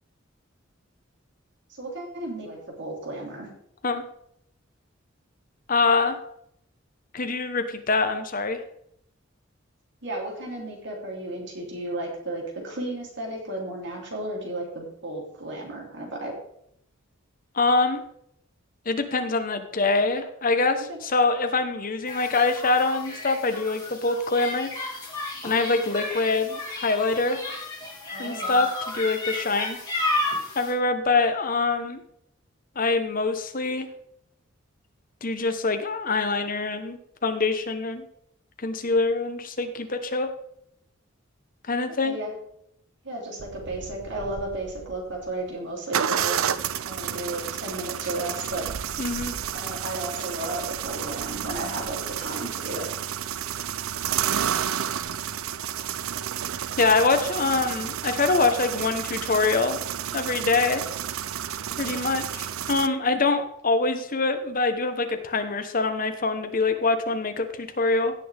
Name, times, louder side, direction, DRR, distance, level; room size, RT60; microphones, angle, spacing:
voice 1, 1.7-3.5 10.0-16.3 20.9-21.0 28.1-28.6 42.0-42.3 43.0-48.6 49.5-52.9, right 1 dB, 60° right, -1 dB, 3.2 m, -34 dB
voice 2, 5.7-6.2 7.1-8.6 17.5-18.0 18.8-24.7 25.4-27.4 28.2-29.8 30.5-32.0 32.7-33.9 35.2-38.0 38.6-40.3 41.7-42.2 49.0-49.3 56.8-59.8 60.1-60.8 61.8-68.1, left 3 dB, 40° left, 7 dB, 1.1 m, -24 dB
sound 1, 22.1-30.7, left 2 dB, 20° left, 2.9 m, -32 dB
sound 2, 43.4-45.3 45.9-62.9, right 9 dB, 90° right, 0.5 m, -31 dB
16.5 x 6.4 x 3.5 m, 0.72 s
head